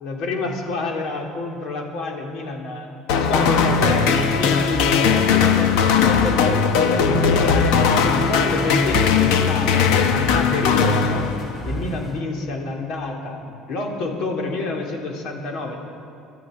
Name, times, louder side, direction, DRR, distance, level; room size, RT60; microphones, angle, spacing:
voice 1, 0.0-7.7 8.0-11.3 11.6-13.4 13.7-15.8, left 3 dB, 60° left, 1 dB, 2.9 m, -28 dB
sound 1, 3.1-11.7, left 6 dB, 85° left, 1.2 m, -19 dB
sound 2, 3.5-12.2, equal, 5° left, 1.5 m, -33 dB
22.0 x 12.5 x 5.1 m, 2.6 s
cardioid pair, 120°, 0 cm